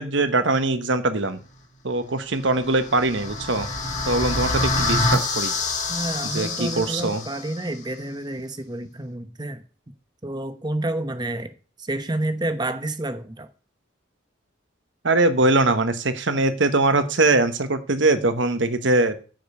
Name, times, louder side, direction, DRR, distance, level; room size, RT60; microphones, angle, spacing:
voice 1, 0.0-1.4 1.8-3.7 4.1-5.5 6.3-7.2 15.0-19.2, right 2 dB, 65° right, 10 dB, 1.1 m, -22 dB
sound 1, 2.5-7.6, left 2 dB, 35° left, 2.2 m, -26 dB
voice 2, 5.9-9.6 10.2-11.5 11.8-13.5, right 1 dB, 20° right, 10 dB, 0.9 m, -29 dB
9.3 x 5.2 x 6.7 m, 0.38 s
head